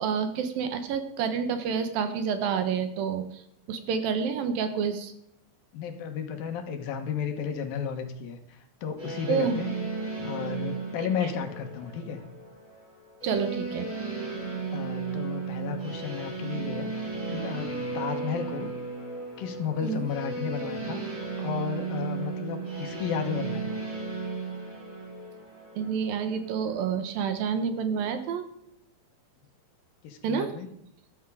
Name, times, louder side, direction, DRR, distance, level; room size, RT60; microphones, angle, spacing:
voice 1, 0.0-3.4 3.7-5.1 9.3-9.6 11.0-11.1 13.2-13.9 19.8-20.1 25.8-28.4 30.2-30.5, right 6 dB, 75° right, 8 dB, 2.8 m, -28 dB
voice 2, 5.7-9.7 10.2-12.2 14.7-18.7 19.4-21.0 21.4-23.8 30.0-30.7, left 7 dB, 75° left, 6 dB, 3.0 m, -33 dB
sound 1, 9.0-27.1, right 4 dB, 20° right, 4.2 m, -35 dB
13.5 x 12.0 x 5.1 m, 0.75 s
omnidirectional pair, 4.3 m